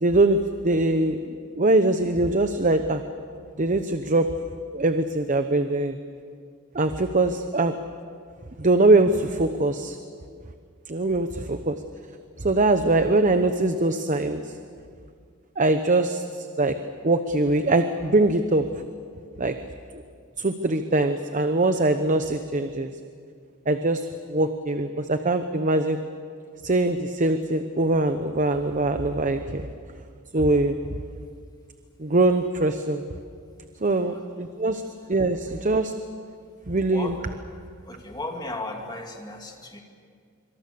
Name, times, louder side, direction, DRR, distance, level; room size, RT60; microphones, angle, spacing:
voice 1, 0.0-3.0 3.6-4.3 4.7-6.0 6.7-7.7 8.6-10.0 10.9-11.7 12.4-14.5 15.6-16.7 17.0-18.6 19.4-19.6 20.4-22.9 23.7-26.0 26.6-29.7 30.3-30.8 32.0-33.0 33.8-34.8 35.1-35.9 36.7-37.1, right 2 dB, 35° right, 8 dB, 0.9 m, -22 dB
voice 2, 36.9-37.2 37.8-39.8, left 2 dB, 20° left, 2 dB, 2.7 m, -36 dB
25.5 x 25.0 x 7.0 m, 2.2 s
head